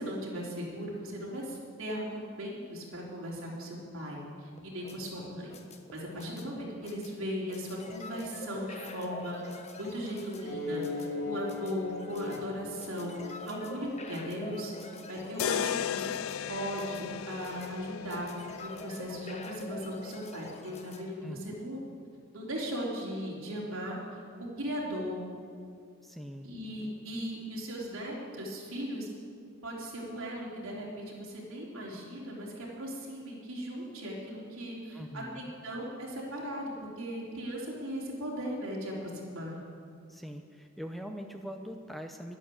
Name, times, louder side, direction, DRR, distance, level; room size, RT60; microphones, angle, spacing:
voice 1, 0.0-5.5 5.9-14.7 15.1-16.1 16.5-21.8 22.3-25.2 26.4-29.1 29.6-39.6, equal, 65° right, -4 dB, 3.7 m, -38 dB
sound 1, 4.6-21.0, left 2 dB, 30° left, 1.1 m, -46 dB
sound 2, 10.4-15.4, left 3 dB, 50° left, 4.4 m, -39 dB
sound 3, 15.4-19.5, left 10 dB, 70° left, 0.3 m, -36 dB
voice 2, 26.0-26.5 34.9-35.5 40.1-42.4, equal, ahead, 5 dB, 0.6 m, -42 dB
11.5 x 10.5 x 8.6 m, 2.3 s
head